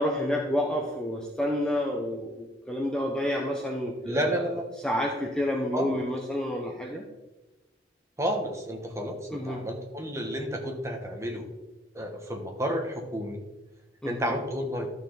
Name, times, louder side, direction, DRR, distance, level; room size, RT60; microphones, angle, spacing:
voice 1, 0.0-4.4 4.8-7.1 9.3-9.7 14.0-14.3, left 1 dB, 5° left, 0 dB, 0.8 m, -29 dB
voice 2, 4.0-4.7 5.7-6.0 8.2-11.5 11.9-13.4 14.0-14.9, equal, 15° right, 2 dB, 1.4 m, -31 dB
12.5 x 6.5 x 4.0 m, 1.1 s
head